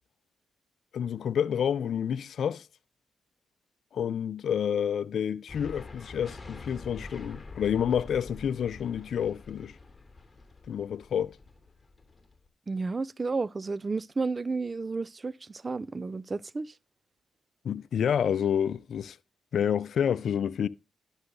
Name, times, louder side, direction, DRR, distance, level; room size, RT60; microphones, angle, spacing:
voice 1, 0.9-2.7 3.9-9.8 10.7-11.4 17.6-19.2 19.5-20.7, left 8 dB, 70° left, 0.5 m, -29 dB
sound 1, 5.5-12.5, left 3 dB, 25° left, 2.8 m, -46 dB
voice 2, 12.7-16.7, right 3 dB, 35° right, 0.4 m, -32 dB
11.5 x 6.3 x 3.8 m
supercardioid pair, 50°, 0 cm